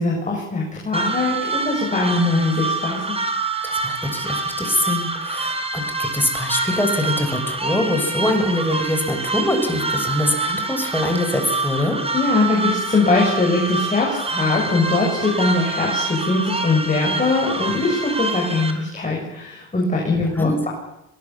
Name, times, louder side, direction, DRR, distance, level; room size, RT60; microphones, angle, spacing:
voice 1, 0.0-3.2 12.1-20.7, left 3 dB, 25° left, -2 dB, 7.2 m, -21 dB
sound 1, 0.9-18.7, right 3 dB, 20° right, 4.3 m, -26 dB
voice 2, 3.6-12.0 20.3-20.7, left 1 dB, 5° left, 4 dB, 6.4 m, -23 dB
22.5 x 20.5 x 7.2 m, 0.85 s
cardioid pair, 90°, 30 cm